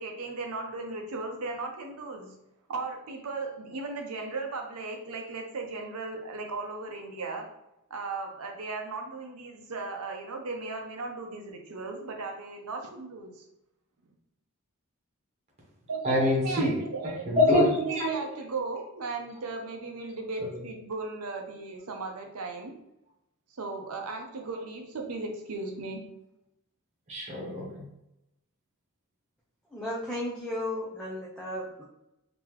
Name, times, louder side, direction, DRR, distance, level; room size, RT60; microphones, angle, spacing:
voice 1, 0.0-2.3 2.7-7.5 7.9-13.4 15.9-17.2 17.8-22.8 23.6-26.0, right 3 dB, 75° right, 3 dB, 0.7 m, -36 dB
voice 2, 16.0-16.7 17.3-18.1 27.1-27.8, left 1 dB, 30° right, -3 dB, 1.1 m, -24 dB
voice 3, 29.7-31.8, left 1 dB, 5° left, -6 dB, 0.5 m, -34 dB
3.7 x 2.9 x 3.0 m, 0.85 s
head